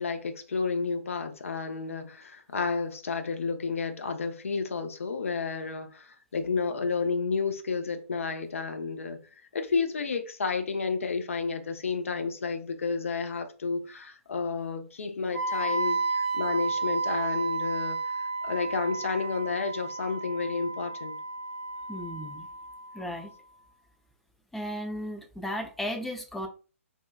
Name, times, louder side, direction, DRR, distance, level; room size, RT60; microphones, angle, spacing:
voice 1, 0.0-9.2 9.5-21.2, left 4 dB, 65° left, 0.5 m, -31 dB
Wind instrument woodwind instrument, 15.3-23.3, right 3 dB, 75° right, 0.9 m, -32 dB
voice 2, 21.9-22.5 22.9-23.3 24.5-26.5, equal, 5° left, 0.3 m, -35 dB
2.7 x 2.1 x 2.2 m
figure-of-eight pair, 125°, 8 cm